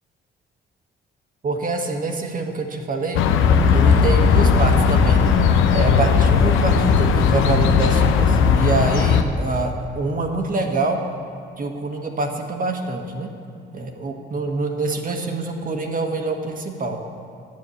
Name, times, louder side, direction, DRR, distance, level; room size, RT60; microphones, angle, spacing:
voice 1, 1.4-3.3 3.7-11.0 11.6-13.3 13.7-17.0, right 3 dB, 45° right, 3 dB, 1.4 m, -25 dB
sound 1, 3.1-9.2, left 6 dB, 85° left, 0.7 m, -16 dB
9.6 x 7.2 x 8.3 m, 2.4 s
cardioid pair, 90°, 20 cm